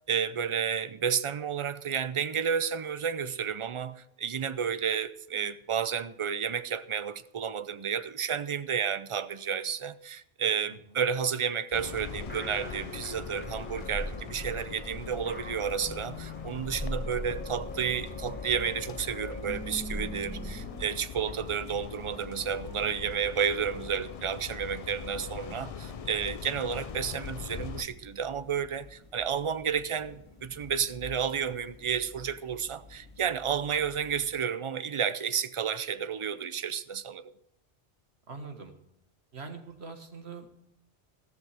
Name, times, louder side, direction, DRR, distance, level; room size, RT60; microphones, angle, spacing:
voice 1, 0.1-37.3, right 7 dB, 50° right, 0.4 m, -31 dB
voice 2, 10.7-11.0 21.3-21.4 26.2-26.3 38.3-38.7 39.3-40.5, right 4 dB, 65° right, 1.8 m, -43 dB
sound 1, 11.7-27.8, left 7 dB, 45° left, 0.5 m, -42 dB
sound 2, 12.2-20.9, left 1 dB, 10° left, 1.1 m, -40 dB
sound 3, 16.0-34.4, left 4 dB, 25° left, 1.6 m, -50 dB
14.5 x 13.5 x 3.4 m
omnidirectional pair, 1.2 m